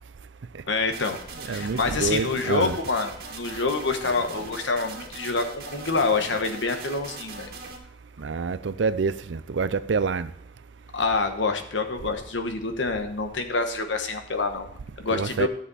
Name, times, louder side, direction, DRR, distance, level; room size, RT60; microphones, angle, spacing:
voice 1, 0.7-1.2 1.5-7.5 10.9-15.5, left 3 dB, 80° left, 1.2 m, -27 dB
sound 1, 0.9-7.8, right 3 dB, 55° right, 1.8 m, -40 dB
voice 2, 1.5-2.8 8.2-10.3 15.1-15.5, right 4 dB, 75° right, 0.5 m, -27 dB
12.5 x 7.4 x 4.2 m
head